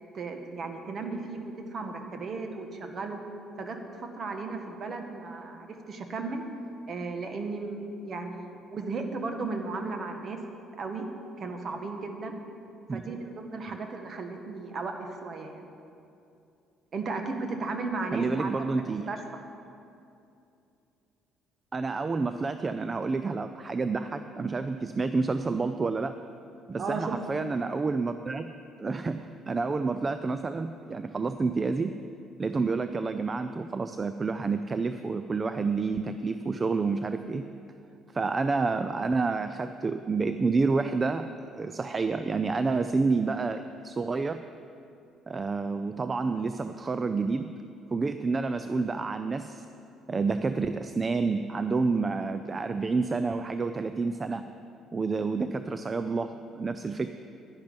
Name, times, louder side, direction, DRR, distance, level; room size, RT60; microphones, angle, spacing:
voice 1, 0.1-3.2 3.6-6.5 6.9-10.4 10.8-11.0 11.4-12.4 12.9-15.7 16.9-18.5 19.1-19.4 26.8-27.2, right 3 dB, 45° right, 5 dB, 1.3 m, -35 dB
voice 2, 18.1-19.1 21.7-26.1 26.7-28.5 28.8-31.9 32.4-37.4 38.1-44.4 45.3-47.5 47.9-49.7 50.1-54.4 54.9-57.1, right 4 dB, 30° right, 10 dB, 0.4 m, -29 dB
10.5 x 10.5 x 5.2 m, 2.6 s
cardioid pair, 100°, 0 cm